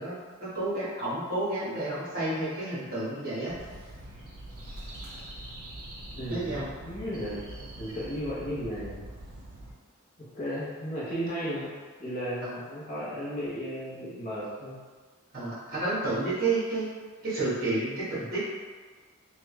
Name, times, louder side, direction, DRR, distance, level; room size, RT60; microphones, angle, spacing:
voice 1, 0.0-3.5 6.3-6.7 12.4-12.6 15.3-16.9 17.2-18.4, right 2 dB, 40° right, -9 dB, 1.2 m, -30 dB
sound 1, 3.5-9.7, right 1 dB, 85° right, 0.7 m, -43 dB
voice 2, 6.1-9.1 10.2-11.7 12.0-14.8, equal, 35° left, -8 dB, 0.8 m, -35 dB
3.4 x 2.3 x 3.0 m, 1.5 s
head